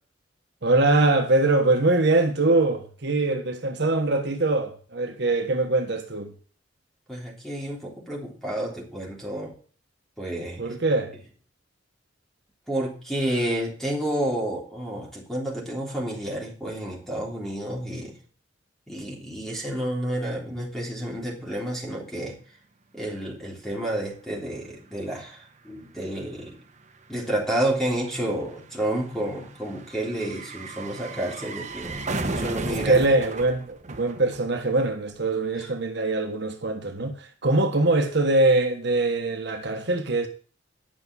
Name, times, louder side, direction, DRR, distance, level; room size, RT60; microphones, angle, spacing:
voice 1, 0.6-6.3 10.6-11.2 32.7-40.3, right 2 dB, 60° right, 1.3 m, -23 dB
voice 2, 7.1-9.5 10.2-10.7 12.7-18.2 18.9-22.4 22.9-26.6 27.1-33.0 35.6-35.7, right 1 dB, ahead, 3.4 m, -30 dB
sound 1, 24.2-24.3 24.4-34.8 35.1-35.2, right 2 dB, 40° right, 1.1 m, -36 dB
10.5 x 6.0 x 6.9 m
head